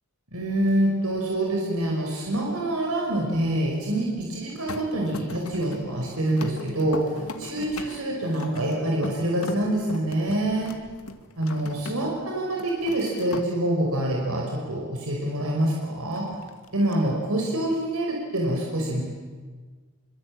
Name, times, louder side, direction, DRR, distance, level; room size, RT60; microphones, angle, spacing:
voice 1, 0.3-7.1 7.4-10.7 11.4-16.3 16.7-19.0, right 1 dB, 90° right, -1 dB, 5.6 m, -26 dB
sound 1, 4.7-12.2 12.5-13.5 16.2-16.9, left 2 dB, 80° left, 2.1 m, -39 dB
26.5 x 25.0 x 8.9 m, 1.5 s
head